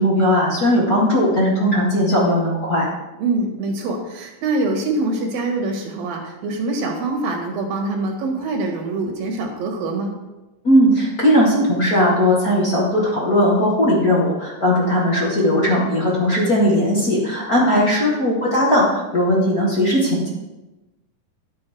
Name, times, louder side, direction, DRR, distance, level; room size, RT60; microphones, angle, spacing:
voice 1, 0.0-2.9 10.6-20.3, equal, 30° left, -5 dB, 2.0 m, -18 dB
voice 2, 3.2-10.1 17.6-17.9, right 2 dB, 85° right, 2 dB, 3.5 m, -24 dB
11.0 x 8.6 x 4.7 m, 1.0 s
omnidirectional pair, 4.0 m